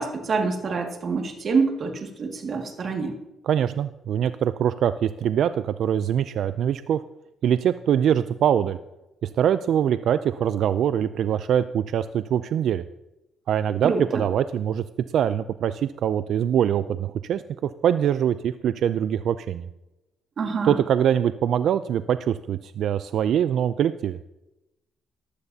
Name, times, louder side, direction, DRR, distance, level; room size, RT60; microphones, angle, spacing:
voice 1, 0.0-3.2 13.8-14.2 20.4-20.8, right 4 dB, 50° right, 3 dB, 2.0 m, -26 dB
voice 2, 3.5-7.0 7.4-8.8 9.2-12.8 13.5-14.8 15.1-19.7 20.6-24.2, right 9 dB, 70° right, 12 dB, 0.3 m, -23 dB
14.5 x 12.0 x 2.8 m, 0.97 s
cardioid pair, 90°, 0 cm